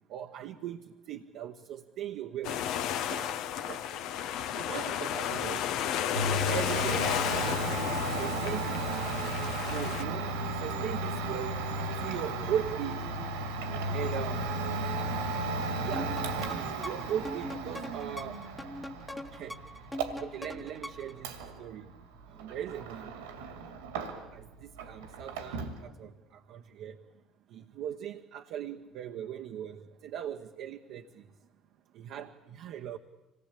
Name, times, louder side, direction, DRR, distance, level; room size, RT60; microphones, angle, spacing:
voice 1, 0.1-2.6 3.1-3.9 4.6-5.7 6.3-8.9 9.7-10.3 10.6-11.6 12.0-13.1 13.7-14.5 15.8-16.2 16.5-18.4 19.3-19.6 20.2-21.9 22.3-23.1 24.3-27.0 27.5-31.3 31.9-33.0, right 10 dB, 65° right, 4 dB, 1.1 m, -39 dB
sound 1, 2.4-10.0, left 10 dB, 70° left, 1.0 m, -33 dB
Domestic sounds home sounds, 6.1-24.5 24.7-25.8, right 2 dB, 85° right, 2.3 m, -35 dB
sound 2, 15.9-21.2, left 1 dB, 10° left, 1.2 m, -42 dB
25.5 x 19.0 x 8.4 m, 1.0 s
hypercardioid pair, 60°, 0 cm